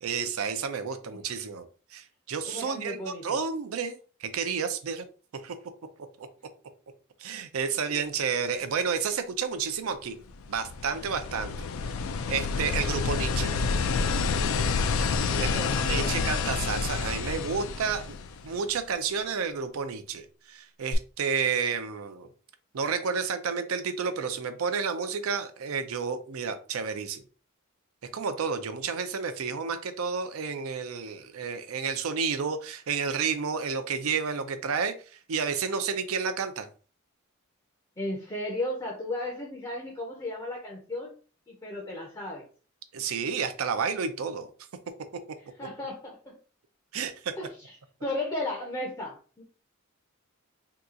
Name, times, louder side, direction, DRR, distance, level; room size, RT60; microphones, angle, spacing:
voice 1, 0.0-1.6 1.9-5.0 5.4-5.5 6.2-6.3 7.2-10.1 10.5-11.7 12.3-13.5 15.4-18.2 18.4-22.3 22.7-27.2 28.1-34.9 35.3-36.7 42.9-44.5 46.9-47.3, right 6 dB, 70° right, 9 dB, 0.5 m, -31 dB
voice 2, 2.4-3.4 15.3-16.2 38.0-41.1 41.5-42.5 45.6-46.4 47.4-47.8 48.0-49.4, left 1 dB, 20° left, 0 dB, 0.6 m, -35 dB
sound 1, 10.3-18.8 20.9-21.0, left 5 dB, 65° left, 0.4 m, -28 dB
2.8 x 2.3 x 3.7 m, 0.39 s
head